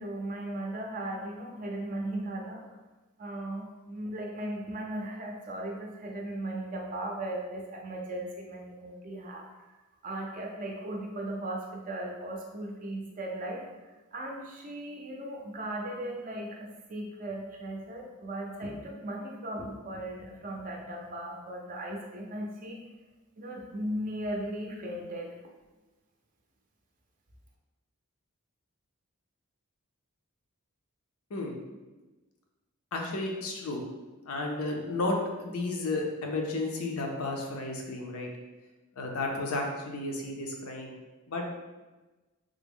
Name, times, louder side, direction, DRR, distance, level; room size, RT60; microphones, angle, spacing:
voice 1, 0.0-2.7 3.2-9.4 10.0-13.7 14.1-22.8 23.4-25.4, right 1 dB, 35° right, 0 dB, 0.5 m, -37 dB
voice 2, 32.9-33.8 34.3-38.3 39.0-41.0 41.3-41.4, left 2 dB, 75° left, 1 dB, 0.6 m, -32 dB
3.4 x 2.0 x 3.5 m, 1.2 s
head